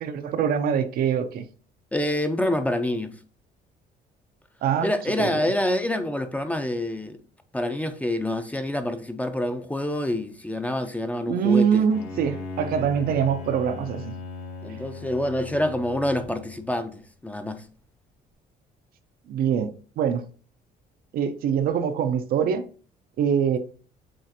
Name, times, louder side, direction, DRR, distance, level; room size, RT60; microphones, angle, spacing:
voice 1, 0.0-1.5 4.6-4.9 5.2-5.5 11.3-14.1 19.3-20.2 21.1-22.6 23.2-23.6, right 7 dB, 65° right, 0.5 m, -24 dB
voice 2, 1.9-3.1 4.8-7.2 7.5-11.9 14.6-17.6, left 1 dB, 10° left, 0.5 m, -27 dB
Bowed string instrument, 11.9-16.8, left 4 dB, 90° left, 1.1 m, -38 dB
7.4 x 2.5 x 2.7 m
cardioid pair, 110°, 17 cm